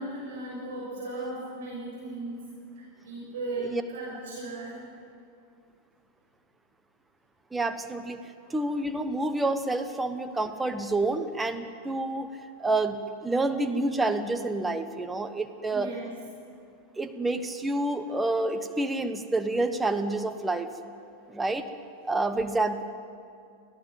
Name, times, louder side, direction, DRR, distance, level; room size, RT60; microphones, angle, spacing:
voice 1, 0.0-2.5 2.7-4.9 8.4-8.6 15.7-16.2, right 2 dB, 60° right, -4 dB, 6.4 m, -37 dB
voice 2, 7.5-8.2 8.5-12.3 12.6-15.9 17.0-20.7 21.3-21.7 22.0-22.8, right 2 dB, 10° right, 8 dB, 1.3 m, -28 dB
25.0 x 16.5 x 7.6 m, 2.4 s
figure-of-eight pair, 90°, 0 cm